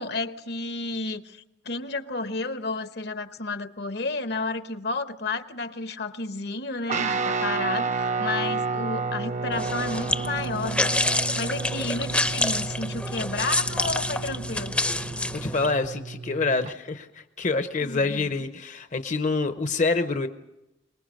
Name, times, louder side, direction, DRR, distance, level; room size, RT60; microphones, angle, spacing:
voice 1, 0.0-14.8 17.8-18.3, left 3 dB, 60° left, 10 dB, 1.0 m, -32 dB
Guitar, 6.9-16.7, right 4 dB, 40° right, 0.7 m, -31 dB
sound 1, 9.5-15.7, left 2 dB, 5° left, 0.7 m, -28 dB
voice 2, 15.3-20.3, left 3 dB, 40° left, 8 dB, 0.8 m, -26 dB
24.0 x 20.5 x 6.4 m, 0.93 s
head